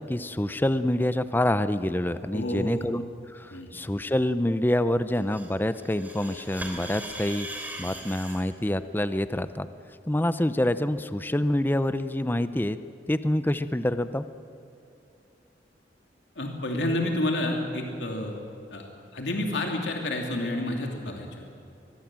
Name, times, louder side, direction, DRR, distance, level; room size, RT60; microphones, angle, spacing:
voice 1, 0.0-3.0 3.3-7.5 7.8-9.7 10.1-12.8 13.1-14.3, left 1 dB, 10° left, 12 dB, 0.6 m, -26 dB
voice 2, 2.3-2.8 3.5-3.7 16.4-18.3 18.7-18.8 19.1-21.4, left 1 dB, 85° left, 1 dB, 2.7 m, -29 dB
sound 1, 5.1-8.4, right 1 dB, 10° right, 3.0 m, -39 dB
23.5 x 20.5 x 7.6 m, 2.7 s
head